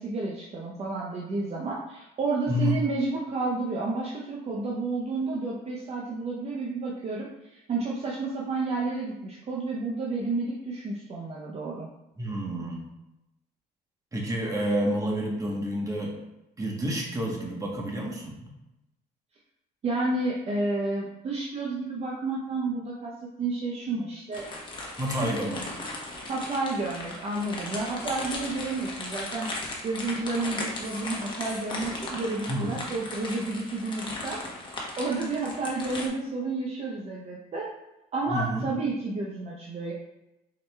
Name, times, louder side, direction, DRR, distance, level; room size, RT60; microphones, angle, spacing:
voice 1, 0.0-11.9 19.8-24.4 26.3-29.5 29.8-34.5 35.0-37.7 38.1-39.9, right 3 dB, 40° right, -3 dB, 0.6 m, -31 dB
voice 2, 12.2-12.9 14.1-16.2 16.6-18.5 25.0-25.7 32.5-32.8 38.3-38.6, equal, 20° right, -1 dB, 1.1 m, -29 dB
sound 1, 24.3-36.1, left 2 dB, 30° left, 1.0 m, -37 dB
4.8 x 4.2 x 2.2 m, 0.93 s
cardioid pair, 110°, 17 cm